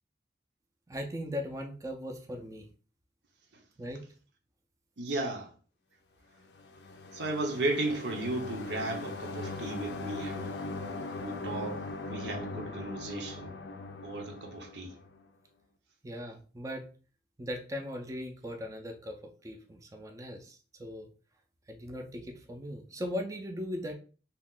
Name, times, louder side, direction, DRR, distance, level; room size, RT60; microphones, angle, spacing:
voice 1, 0.9-2.7 3.8-4.0 16.0-16.9 17.4-21.1 21.7-23.9, left 1 dB, 20° right, 0.4 m, -39 dB
voice 2, 5.0-5.5 7.1-10.5 11.2-13.5 14.0-15.0, right 2 dB, 80° right, 0.8 m, -35 dB
sound 1, 6.5-15.2, left 3 dB, 70° left, 0.4 m, -40 dB
2.9 x 2.4 x 3.6 m
head